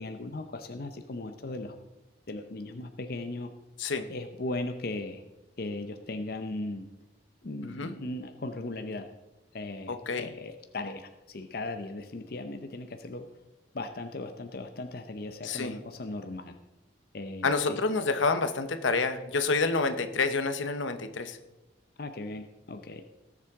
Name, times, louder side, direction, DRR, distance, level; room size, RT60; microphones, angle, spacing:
voice 1, 0.0-1.7 2.3-3.5 4.1-5.2 5.6-6.9 7.4-9.0 9.5-13.3 13.7-16.5 17.1-17.8 22.0-23.0, left 2 dB, 50° left, 7 dB, 0.6 m, -37 dB
voice 2, 7.6-7.9 9.9-10.3 15.4-15.8 17.4-21.4, left 4 dB, 80° left, 9 dB, 0.9 m, -28 dB
18.0 x 7.4 x 3.6 m, 1.0 s
head